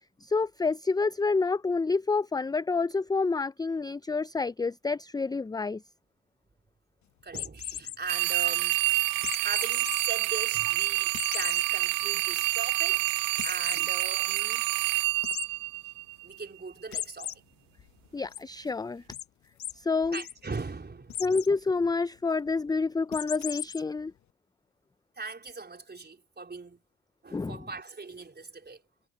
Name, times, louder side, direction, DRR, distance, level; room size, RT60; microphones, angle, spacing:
voice 1, 0.2-5.8 18.1-19.0 19.7-20.2 21.2-24.1 27.3-27.6, left 4 dB, 10° left, 0.6 m, -28 dB
voice 2, 7.2-8.8 9.4-14.7 16.2-17.4 20.1-21.2 25.2-26.8 27.2-28.8, right 4 dB, 25° right, 4.3 m, -40 dB
sound 1, 7.3-8.0 9.2-10.0 10.4-10.5 11.1-11.6 12.1-12.2 12.5-12.6 13.4-13.8 15.2-15.5 16.9-17.3 17.8-18.4 19.1-19.2 19.6-19.7 20.0-20.3 21.1-21.5 23.1-23.8, left 10 dB, 40° left, 1.1 m, -36 dB
sound 2, 8.1-16.3, right 20 dB, 55° right, 0.6 m, -28 dB
hypercardioid pair, 60°, 42 cm